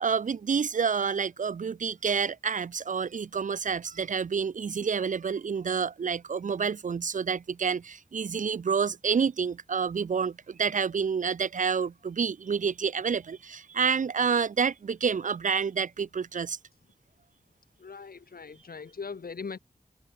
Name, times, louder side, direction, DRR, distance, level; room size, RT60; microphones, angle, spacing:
voice 1, 0.0-16.6, right 6 dB, 55° right, 0.4 m, -28 dB
voice 2, 17.8-19.6, left 5 dB, 75° left, 1.5 m, -40 dB
wide cardioid pair, 85°, 15 cm